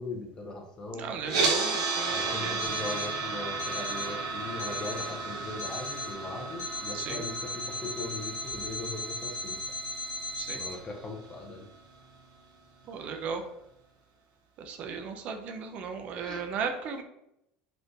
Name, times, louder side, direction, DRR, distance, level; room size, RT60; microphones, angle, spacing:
voice 1, 0.0-1.1 2.1-9.6 10.5-11.7 13.0-13.3 15.0-15.1 16.2-16.4, left 3 dB, 20° left, 1 dB, 0.5 m, -39 dB
voice 2, 0.9-2.6 6.9-7.3 10.3-10.6 12.9-13.4 14.6-17.0, right 6 dB, 40° right, 6 dB, 0.4 m, -36 dB
sound 1, 1.2-11.3, right 4 dB, 85° right, 0.7 m, -34 dB
Alarm, 2.6-3.2 3.6-4.2 4.6-5.2 5.6-6.2 6.6-10.7, left 1 dB, 55° left, 1.1 m, -37 dB
Bass guitar, 2.7-8.9, left 1 dB, 5° right, 1.0 m, -57 dB
3.5 x 2.5 x 2.6 m, 0.81 s
cardioid pair, 155°, 4 cm